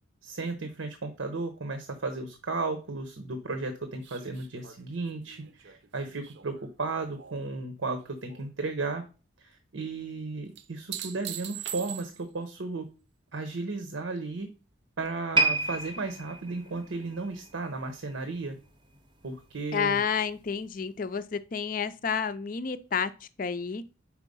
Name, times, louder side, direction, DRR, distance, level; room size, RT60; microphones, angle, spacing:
voice 1, 0.2-9.0 9.4-12.9 13.3-14.5 15.0-18.6 19.2-20.0, right 3 dB, 90° right, 0.9 m, -34 dB
sound 1, 4.0-7.5 7.9-8.5 10.6-12.4 15.0-15.1, right 10 dB, 65° right, 0.6 m, -42 dB
sound 2, 15.3-18.6 18.9-19.2 19.9-20.0, right 3 dB, 25° right, 0.6 m, -30 dB
voice 2, 19.7-23.8, left 6 dB, 45° left, 0.4 m, -30 dB
4.8 x 4.5 x 5.3 m
head